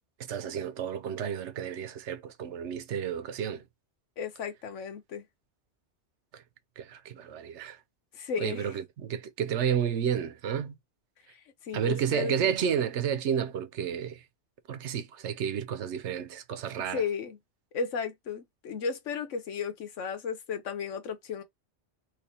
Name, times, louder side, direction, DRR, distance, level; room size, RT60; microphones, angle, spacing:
voice 1, 0.2-3.6 6.3-6.4 6.8-7.8 8.4-10.8 11.7-14.2 14.7-17.0, right 8 dB, 75° right, 1.0 m, -31 dB
voice 2, 4.2-5.2 8.1-8.8 11.6-12.5 16.9-17.4 17.7-21.4, left 6 dB, 85° left, 1.2 m, -34 dB
3.4 x 3.1 x 4.3 m
omnidirectional pair, 1.2 m